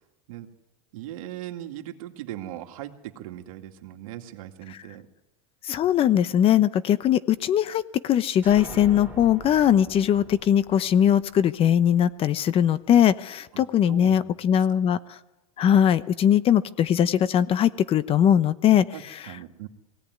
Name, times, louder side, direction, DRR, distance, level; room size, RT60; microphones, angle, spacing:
voice 1, 0.9-5.1 13.5-14.3 18.9-19.7, right 13 dB, 70° right, 5 dB, 2.3 m, -39 dB
voice 2, 5.6-15.2 15.6-18.8, left 10 dB, 30° left, 15 dB, 0.9 m, -20 dB
sound 1, 8.4-12.1, right 2 dB, 10° right, 2.9 m, -44 dB
21.5 x 17.5 x 9.5 m, 1.0 s
supercardioid pair, 125°, 18 cm